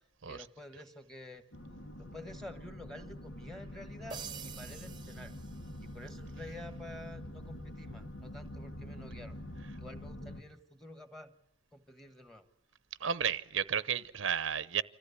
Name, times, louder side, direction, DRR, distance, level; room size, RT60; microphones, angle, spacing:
voice 1, 0.2-1.4 2.0-5.3 5.8-9.4 9.8-11.3 11.7-12.4, left 1 dB, ahead, 1.4 m, -49 dB
sound 1, 1.5-10.4, left 1 dB, 85° left, 2.0 m, -46 dB
sound 2, 4.1-6.2, right 7 dB, 25° right, 0.9 m, -47 dB
voice 2, 13.0-14.8, right 8 dB, 90° right, 0.8 m, -32 dB
26.5 x 15.0 x 9.7 m
head